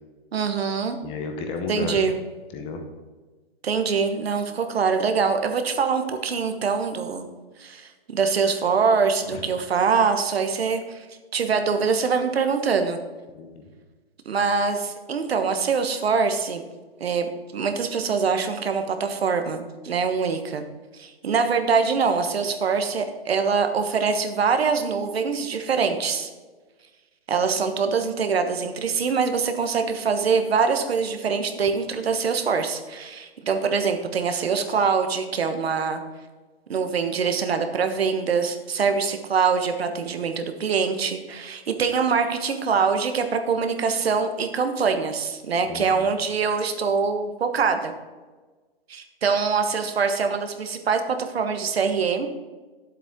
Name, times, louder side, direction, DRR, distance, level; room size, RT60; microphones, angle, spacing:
voice 1, 0.3-1.0 1.7-2.2 3.6-7.3 7.6-11.0 11.3-13.0 14.2-16.6 17.0-17.3 17.5-20.6 20.9-26.3 27.3-36.0 36.7-47.9 48.9-52.3, right 5 dB, 80° right, 7 dB, 1.3 m, -24 dB
voice 2, 1.0-2.1 2.5-2.8 9.3-9.4 13.3-13.7 45.7-46.1, left 4 dB, 20° left, 4 dB, 0.8 m, -32 dB
9.2 x 7.6 x 3.7 m, 1.3 s
hypercardioid pair, 150°, 30 cm